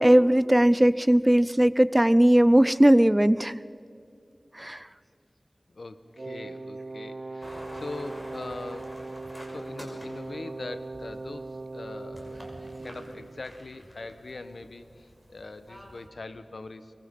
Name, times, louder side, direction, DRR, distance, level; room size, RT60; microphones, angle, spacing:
voice 1, 0.0-3.6 4.6-4.8, right 1 dB, 15° right, 17 dB, 0.5 m, -19 dB
voice 2, 5.7-9.0 9.5-11.5 11.7-12.4 12.8-16.9, left 3 dB, 80° left, 11 dB, 1.1 m, -41 dB
Brass instrument, 6.1-10.2, right 1 dB, 40° right, 3.8 m, -51 dB
Wind instrument woodwind instrument, 6.2-13.5, right 3 dB, 65° right, 0.6 m, -40 dB
sound 1, 7.4-16.1, equal, 5° left, 5.7 m, -48 dB
23.5 x 23.0 x 5.4 m, 2.4 s
wide cardioid pair, 45°, 0 cm